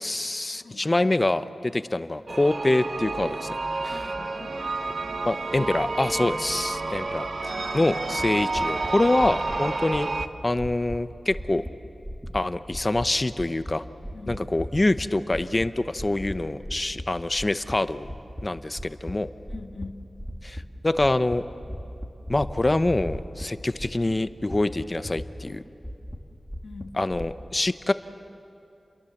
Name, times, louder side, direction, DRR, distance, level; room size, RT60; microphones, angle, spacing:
voice 1, 0.0-3.6 3.8-4.0 5.2-10.1 10.4-11.6 12.3-13.8 14.3-18.1 18.4-19.3 20.4-21.4 22.3-25.6 27.0-27.9, left 2 dB, 25° left, 12 dB, 0.8 m, -25 dB
sound 1, 2.3-10.3, right 3 dB, 50° right, 0.9 m, -30 dB
voice 2, 3.9-4.8 6.1-6.4 14.1-14.4 19.5-20.0 26.6-27.0, left 3 dB, 85° left, 6 dB, 1.4 m, -43 dB
sound 2, 8.2-8.3 8.5-8.9 9.2-9.6 9.9-10.3 10.5-11.0 11.3-11.7 12.0-12.4 12.7-13.1 13.3-13.7 14.0-15.1 15.3-15.7 16.0-16.3 16.6-17.0 17.3-18.4 18.8-19.1 19.5-19.9 20.2-20.6 20.9-21.4 21.6-23.5 23.8-24.1 24.4-25.5 25.8-27.3, equal, 5° left, 2.2 m, -36 dB
30.0 x 22.5 x 7.2 m, 2.8 s
wide cardioid pair, 105°, 0 cm